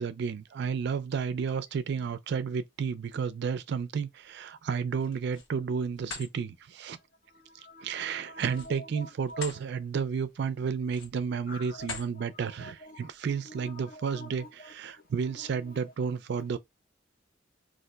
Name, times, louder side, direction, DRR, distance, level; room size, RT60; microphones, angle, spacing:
voice 1, 0.0-7.0 7.8-16.6, right 6 dB, 60° right, 0.3 m, -32 dB
sound 1, 4.9-5.5 5.9-6.3 8.4-9.6 10.1-10.3 10.8-11.3 11.8-12.1, left 4 dB, 90° left, 1.0 m, -42 dB
voice 2, 7.3-8.5 9.0-9.4 11.5-12.0 12.6-13.0 13.5-14.5, left 1 dB, 45° left, 0.6 m, -47 dB
2.5 x 2.1 x 3.8 m
head